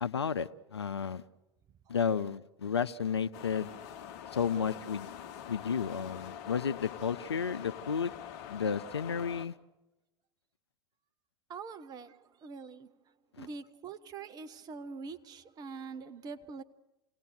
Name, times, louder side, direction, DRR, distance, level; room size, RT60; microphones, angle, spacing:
voice 1, 0.0-1.2 1.9-3.7 4.3-5.1 5.5-8.1 8.5-9.6 13.4-13.5, left 6 dB, 75° left, 0.7 m, -32 dB
sound 1, 3.3-9.5, left 9 dB, 45° left, 1.2 m, -45 dB
voice 2, 11.5-12.2 12.4-12.9 13.4-16.6, right 5 dB, 30° right, 1.1 m, -44 dB
28.0 x 18.0 x 6.7 m
figure-of-eight pair, 90°, 14 cm